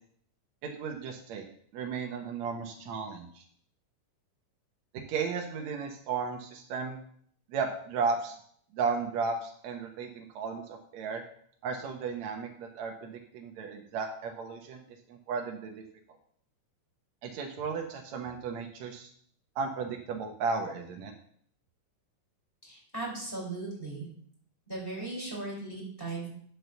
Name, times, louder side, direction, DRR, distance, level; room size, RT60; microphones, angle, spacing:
voice 1, 0.6-1.4 1.7-3.4 4.9-7.0 7.5-8.4 8.7-11.2 11.6-14.8 15.1-15.8 17.2-19.1 19.6-21.1, right 5 dB, 65° right, 2 dB, 2.0 m, -34 dB
voice 2, 22.6-24.1 24.7-26.3, right 2 dB, 5° left, -3 dB, 4.4 m, -37 dB
9.2 x 6.2 x 6.8 m, 0.62 s
omnidirectional pair, 3.9 m